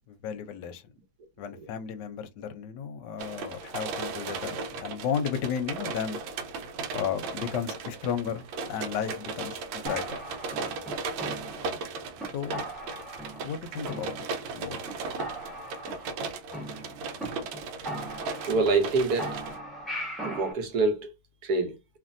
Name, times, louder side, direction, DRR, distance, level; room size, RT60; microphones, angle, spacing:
voice 1, 0.1-0.9 1.4-6.2 6.9-10.1 12.3-12.6 13.4-14.1 14.5-14.8, left 7 dB, 70° left, 1.1 m, -33 dB
sound 1, 3.2-19.6, right 4 dB, 85° right, 1.4 m, -36 dB
sound 2, 9.9-11.8 12.2-12.3 12.5-13.6 13.9-14.6 14.9-15.0 15.2-17.2 17.5-17.6 17.9-18.9 19.2-20.5, right 1 dB, ahead, 0.6 m, -38 dB
voice 2, 18.5-19.4 20.2-21.1 21.4-21.7, right 3 dB, 65° right, 1.1 m, -25 dB
3.1 x 2.5 x 2.5 m
omnidirectional pair, 2.1 m